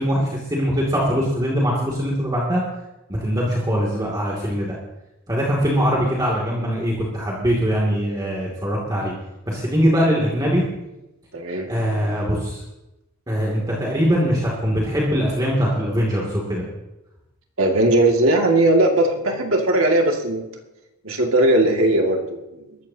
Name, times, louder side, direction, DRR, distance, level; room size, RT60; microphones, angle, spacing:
voice 1, 0.0-2.6 3.1-4.8 5.3-9.1 9.5-10.6 11.7-12.6 13.3-16.6, equal, 20° right, -4 dB, 2.6 m, -22 dB
voice 2, 11.3-11.7 17.6-20.4 21.0-22.8, right 1 dB, 65° right, 1 dB, 2.3 m, -18 dB
22.0 x 14.0 x 2.9 m, 0.95 s
head